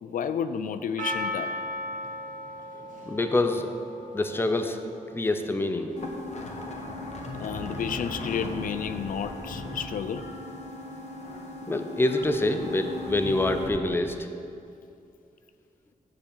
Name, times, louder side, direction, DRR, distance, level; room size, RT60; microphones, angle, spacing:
voice 1, 0.0-1.6 7.4-10.2, left 7 dB, 75° left, 11 dB, 0.4 m, -31 dB
Percussion, 1.0-5.3 6.0-6.1, left 1 dB, 65° right, 1.1 m, -36 dB
voice 2, 3.1-3.7 4.1-4.8 5.1-5.9 11.7-14.3, left 2 dB, 15° left, 7 dB, 0.5 m, -26 dB
sound 1, 6.0-13.7, left 2 dB, 55° left, 1.1 m, -37 dB
9.4 x 4.8 x 7.1 m, 2.5 s
wide cardioid pair, 135°, 14 cm